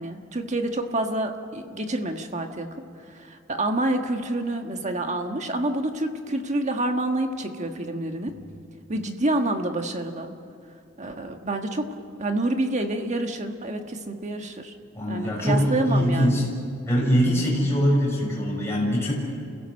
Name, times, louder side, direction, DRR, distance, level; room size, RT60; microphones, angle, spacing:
voice 1, 0.0-2.7 3.1-8.3 8.9-10.3 11.0-11.9 12.2-14.7 15.1-16.4, right 1 dB, 35° right, 5 dB, 1.5 m, -28 dB
voice 2, 14.9-16.4 16.8-19.1, equal, 15° left, -4 dB, 6.6 m, -22 dB
30.0 x 16.5 x 6.5 m, 2.4 s
head